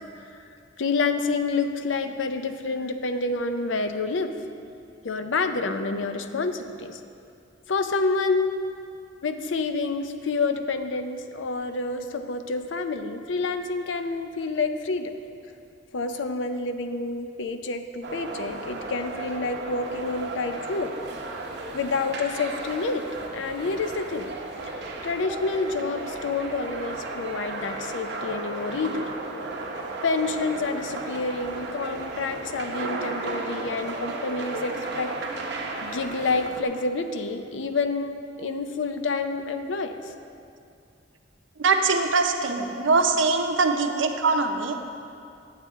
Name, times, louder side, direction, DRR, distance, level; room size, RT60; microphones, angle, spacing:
voice 1, 0.8-4.3 5.0-7.0 7.7-8.6 9.2-15.1 15.9-20.9 21.7-23.0 23.3-24.3 25.0-29.0 30.0-35.1 35.8-38.1 38.4-40.0, left 3 dB, 75° left, 8 dB, 0.5 m, -28 dB
sound 1, 18.0-36.6, right 2 dB, 60° right, 0.9 m, -34 dB
voice 2, 41.6-44.8, right 4 dB, 90° right, 5 dB, 0.7 m, -22 dB
9.3 x 8.2 x 3.6 m, 2.5 s
head